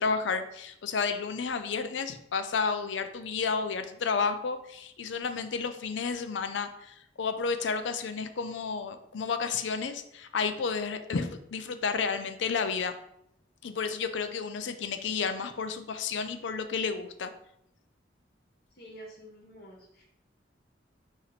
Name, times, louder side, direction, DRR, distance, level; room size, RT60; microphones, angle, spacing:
voice 1, 0.0-12.9 13.6-17.3, left 5 dB, 80° left, 9 dB, 0.5 m, -31 dB
voice 2, 18.7-20.0, right 1 dB, 60° left, -2 dB, 1.1 m, -49 dB
4.3 x 3.0 x 4.0 m, 0.75 s
head